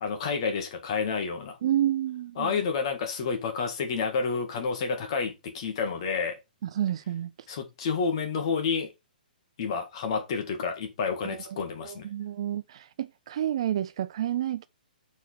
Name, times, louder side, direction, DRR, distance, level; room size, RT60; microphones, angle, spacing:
voice 1, 0.0-1.6 2.4-6.4 7.5-8.9 9.6-12.1, left 5 dB, 35° left, 2.0 m, -29 dB
voice 2, 1.6-2.5 6.6-7.3 11.2-14.7, right 11 dB, 35° right, 0.3 m, -30 dB
6.4 x 4.8 x 4.7 m
hypercardioid pair, 170°, 5 cm